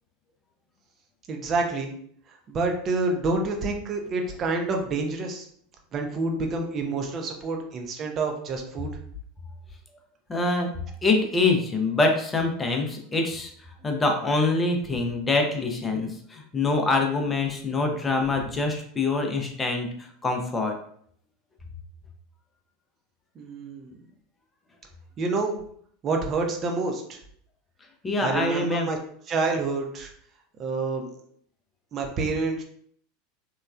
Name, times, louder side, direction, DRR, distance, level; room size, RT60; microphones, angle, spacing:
voice 1, 1.3-1.9 2.5-5.5 5.9-8.9 23.4-23.9 25.2-25.6 26.0-27.2 28.2-29.0 29.3-30.1 30.6-31.1 31.9-32.6, right 3 dB, 35° right, 3 dB, 0.5 m, -28 dB
voice 2, 10.3-10.7 11.0-13.5 13.8-19.9 20.2-20.8 28.0-28.9, left 3 dB, 20° left, 3 dB, 0.5 m, -25 dB
3.0 x 2.3 x 2.3 m, 0.64 s
figure-of-eight pair, 80°, 0 cm